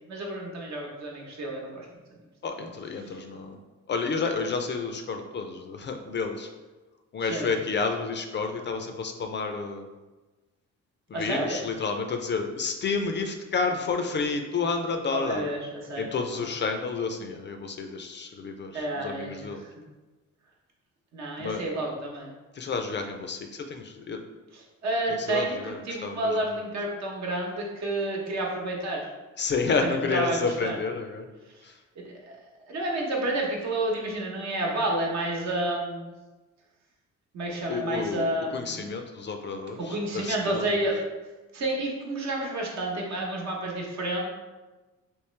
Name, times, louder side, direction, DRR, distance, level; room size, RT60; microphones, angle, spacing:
voice 1, 0.1-1.9 3.0-3.2 7.2-7.5 11.1-11.6 15.1-16.4 18.7-19.7 21.1-22.3 24.5-29.1 29.8-30.8 31.5-31.6 32.0-32.3 32.7-36.1 37.3-38.8 39.8-41.0 41.5-44.2, right 1 dB, 65° right, -1 dB, 0.9 m, -30 dB
voice 2, 2.4-3.6 3.9-6.5 7.1-9.9 11.1-15.4 16.0-19.6 21.4-21.6 22.5-24.2 25.1-26.3 29.4-31.3 31.6-31.8 37.7-40.7, left 4 dB, 40° left, 5 dB, 0.4 m, -30 dB
3.1 x 3.0 x 3.2 m, 1.2 s
cardioid pair, 90°, 30 cm